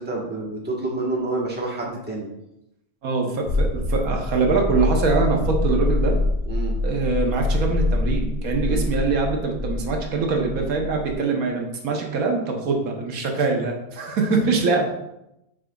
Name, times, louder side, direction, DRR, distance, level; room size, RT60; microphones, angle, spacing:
voice 1, 0.0-2.3 6.5-6.8 8.7-8.9 10.6-10.7 11.1-11.4 11.9-12.0 12.7-12.8, right 2 dB, 10° right, -3 dB, 1.2 m, -29 dB
voice 2, 3.0-6.2 6.8-14.9, right 4 dB, 90° right, 2 dB, 1.4 m, -23 dB
sound 1, 3.5-11.1, left 2 dB, 75° left, 1.2 m, -25 dB
8.8 x 5.0 x 2.3 m, 0.86 s
omnidirectional pair, 1.4 m